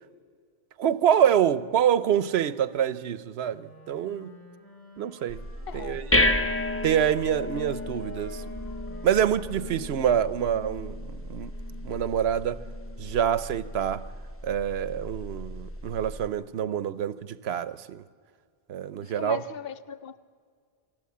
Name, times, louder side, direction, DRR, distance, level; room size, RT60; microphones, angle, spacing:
voice 1, 0.8-4.3 5.0-5.4 5.7-6.1 6.8-8.4 9.0-11.5 11.8-12.6 13.0-14.0 14.4-18.0 18.7-19.4, right 9 dB, 85° right, 1.0 m, -26 dB
Wind instrument woodwind instrument, 3.5-6.7 7.4-10.1, equal, 35° left, 3.7 m, -51 dB
sound 1, 5.3-16.3, left 1 dB, 15° left, 0.8 m, -32 dB
voice 2, 5.7-6.0 10.2-10.3 19.0-20.2, left 7 dB, 65° left, 0.9 m, -39 dB
27.5 x 12.0 x 8.5 m
omnidirectional pair, 1.0 m